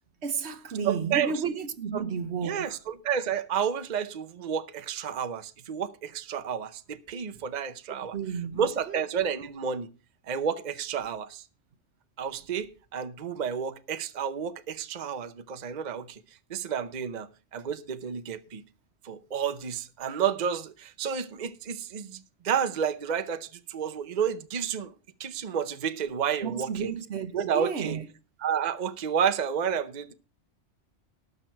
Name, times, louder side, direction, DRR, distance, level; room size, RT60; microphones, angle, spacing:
voice 1, 0.2-2.8 8.1-8.6 8.9-9.0 26.4-28.1, right 6 dB, 70° right, 1.2 m, -32 dB
voice 2, 0.8-1.4 1.9-2.0 2.4-8.2 8.5-9.9 10.3-11.4 12.2-16.2 16.5-18.6 19.0-24.9 25.2-26.9 27.3-28.0 28.4-30.1, right 7 dB, 45° right, 0.8 m, -31 dB
18.5 x 6.5 x 4.5 m
omnidirectional pair, 1.2 m